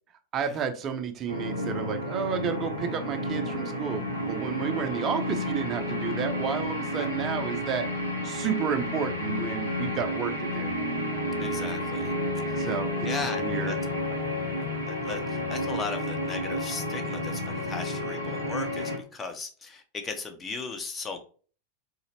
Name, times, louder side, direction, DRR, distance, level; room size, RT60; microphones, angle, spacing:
voice 1, 0.3-7.9 8.2-10.7 12.5-13.1 13.4-13.7, right 7 dB, 30° right, 7 dB, 0.6 m, -31 dB
sound 1, 1.3-19.0, left 1 dB, 90° left, 0.9 m, -31 dB
voice 2, 11.4-12.1 12.5-12.7 13.0-13.7 14.9-21.2, left 4 dB, 20° left, 6 dB, 0.7 m, -37 dB
4.0 x 2.8 x 2.9 m, 0.40 s
figure-of-eight pair, 90°, 0 cm